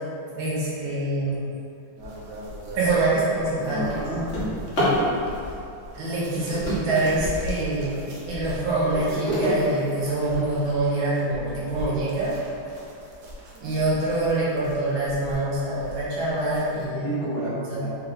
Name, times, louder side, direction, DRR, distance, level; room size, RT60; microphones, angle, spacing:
voice 1, 0.4-1.4 2.7-3.8 6.0-8.0 8.3-12.3 13.6-17.1 17.5-17.8, right 2 dB, 85° right, -8 dB, 1.8 m, -25 dB
sound 1, 2.0-16.9, left 1 dB, 65° right, 1.0 m, -39 dB
Drawer open or close, 2.4-2.6 3.1-5.1 6.1-7.7 8.3-10.7 11.4-11.5 11.9-12.0 12.4-12.8, equal, 40° left, 1.1 m, -30 dB
voice 2, 3.6-5.3 16.9-17.5 17.8-17.9, right 1 dB, 70° left, -10 dB, 1.0 m, -31 dB
4.1 x 2.3 x 3.8 m, 2.6 s
omnidirectional pair, 2.2 m